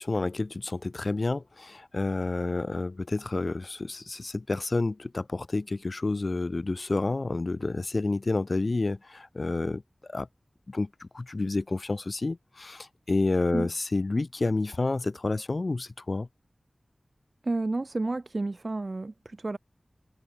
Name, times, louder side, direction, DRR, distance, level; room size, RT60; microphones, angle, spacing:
voice 1, 0.0-9.8 10.1-10.3 10.7-16.3, left 3 dB, 60° left, 5.3 m, -29 dB
voice 2, 17.4-19.6, right 2 dB, 55° right, 4.2 m, -31 dB
wide cardioid pair, 45°, 0 cm